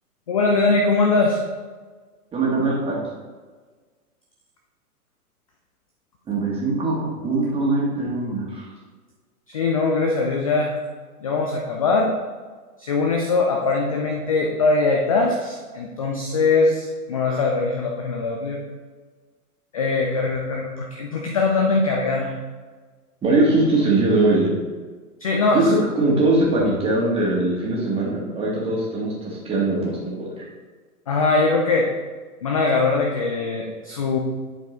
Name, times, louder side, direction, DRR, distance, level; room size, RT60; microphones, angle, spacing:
voice 1, 0.3-1.4 9.5-10.8 11.2-12.1 12.8-18.6 19.7-22.3 25.2-25.7 31.1-31.9 32.4-34.2, left 3 dB, 25° left, 1 dB, 0.4 m, -21 dB
voice 2, 2.3-3.0 6.3-8.6 23.2-24.5 25.5-30.4, right 2 dB, 10° right, -5 dB, 1.7 m, -21 dB
10.5 x 4.5 x 3.0 m, 1.4 s
figure-of-eight pair, 110°, 46 cm